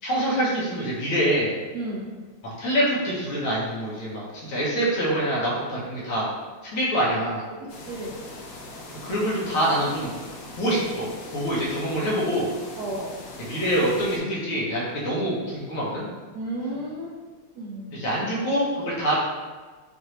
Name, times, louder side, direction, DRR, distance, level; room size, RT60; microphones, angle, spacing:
voice 1, 0.0-1.6 2.4-6.3 6.7-7.4 9.0-10.1 10.6-12.5 13.5-16.1 17.9-19.2, equal, 85° left, -6 dB, 1.9 m, -25 dB
voice 2, 1.7-2.2 7.5-8.2 12.8-13.2 16.3-17.2 17.5-18.1, right 1 dB, 70° right, -4 dB, 0.9 m, -33 dB
sound 1, 7.7-14.2, left 2 dB, 65° left, 1.2 m, -41 dB
6.1 x 2.6 x 3.0 m, 1.3 s
omnidirectional pair, 2.3 m